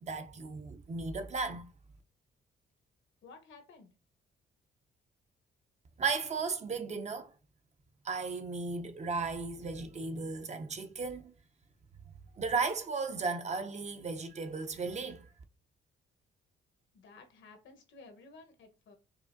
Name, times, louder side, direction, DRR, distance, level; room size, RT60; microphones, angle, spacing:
voice 1, 0.0-1.6 6.0-7.3 8.0-11.3 12.3-15.3, right 4 dB, 35° right, 0.6 m, -35 dB
voice 2, 3.2-3.9 16.9-18.9, left 3 dB, 70° left, 0.9 m, -54 dB
4.7 x 2.5 x 2.5 m
cardioid pair, 90°, 20 cm